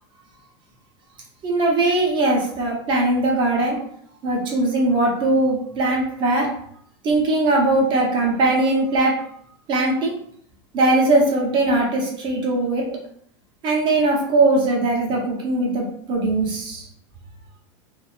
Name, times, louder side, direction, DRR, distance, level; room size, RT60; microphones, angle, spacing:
voice 1, 1.4-3.8 4.2-6.5 7.0-9.1 9.7-10.1 10.7-12.8 13.6-16.9, right 2 dB, 30° right, -2 dB, 0.7 m, -20 dB
2.6 x 2.3 x 2.3 m, 0.66 s
supercardioid pair, 145°, 15 cm